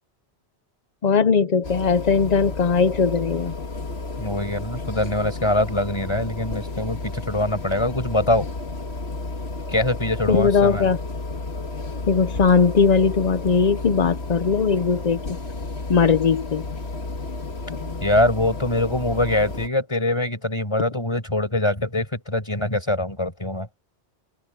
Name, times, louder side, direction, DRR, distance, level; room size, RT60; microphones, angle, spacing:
voice 1, 1.0-3.5 10.3-11.0 11.9-15.2 15.9-16.6 17.7-18.0, left 5 dB, 45° left, 0.7 m, -19 dB
sound 1, 1.6-19.7, left 3 dB, 65° left, 2.1 m, -32 dB
voice 2, 4.2-8.5 9.7-10.9 18.0-23.7, left 1 dB, 25° left, 5.4 m, -23 dB
open air
omnidirectional pair, 1.1 m